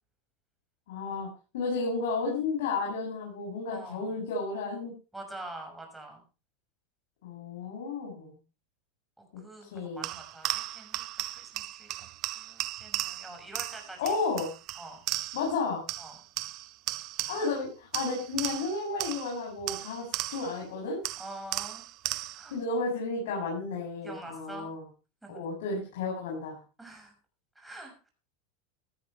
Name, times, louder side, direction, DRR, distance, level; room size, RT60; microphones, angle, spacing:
voice 1, 0.9-1.3 1.5-4.9 7.2-8.4 9.3-10.0 14.0-14.5 15.3-15.8 17.3-21.0 22.5-24.8 25.3-26.6, left 3 dB, 80° left, -2 dB, 7.7 m, -32 dB
voice 2, 3.7-4.1 5.1-6.2 7.6-7.8 9.2-11.9 12.4-14.1 14.8-15.0 16.0-16.2 17.3-17.5 21.2-21.8 22.3-22.6 24.0-24.7 25.2-25.5 26.8-27.1 27.5-28.1, right 2 dB, 5° right, 2 dB, 6.1 m, -46 dB
sound 1, 10.0-15.6 15.9-17.6 17.9-20.6 21.0-22.5, right 17 dB, 45° right, 0.8 m, -36 dB
16.5 x 13.5 x 3.3 m, 0.33 s
supercardioid pair, 150°, 0 cm